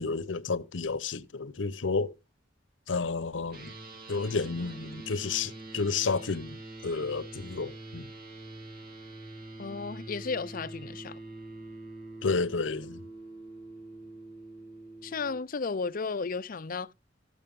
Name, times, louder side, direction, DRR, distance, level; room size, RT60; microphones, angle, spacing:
voice 1, 0.0-2.1 2.9-3.7 4.1-8.1 12.2-13.0, left 4 dB, 80° left, 0.8 m, -31 dB
sound 1, 3.5-15.4, right 2 dB, 55° right, 2.8 m, -45 dB
voice 2, 9.6-11.2 15.0-16.9, left 4 dB, 45° left, 0.5 m, -34 dB
15.0 x 6.6 x 5.3 m
head